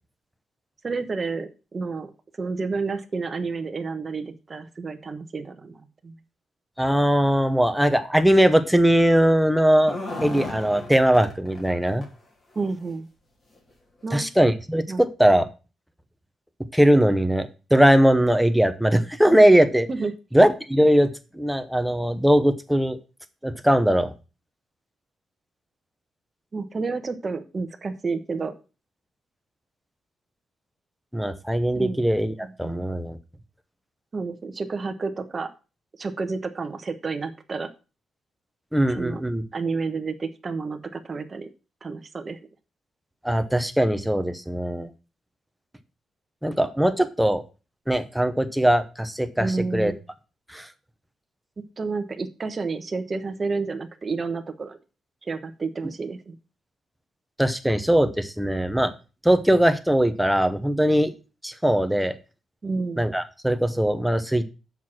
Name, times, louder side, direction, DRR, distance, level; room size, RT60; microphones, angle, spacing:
voice 1, 0.8-2.1 2.4-6.1 12.5-13.1 14.0-14.3 14.9-15.0 19.9-20.1 26.5-28.5 31.7-32.0 32.4-32.8 34.1-35.5 36.0-37.7 38.9-39.2 39.5-41.5 41.8-42.4 49.4-50.0 51.8-54.8 55.2-56.3 62.6-63.0, right 4 dB, 30° right, 8 dB, 1.1 m, -30 dB
voice 2, 6.8-12.0 14.1-15.5 16.7-19.9 20.3-23.0 23.4-24.1 31.1-33.2 38.7-39.4 43.2-44.9 46.4-47.4 47.9-49.9 50.5-50.7 57.4-58.9 59.2-61.1 61.4-62.1 63.0-64.4, equal, ahead, 9 dB, 0.9 m, -20 dB
sound 1, 9.7-11.7 12.0-12.1 12.5-12.7 13.6-13.7 14.0-14.1, left 2 dB, 35° left, 2.8 m, -35 dB
7.3 x 6.0 x 6.0 m, 0.32 s
cardioid pair, 120°, 0 cm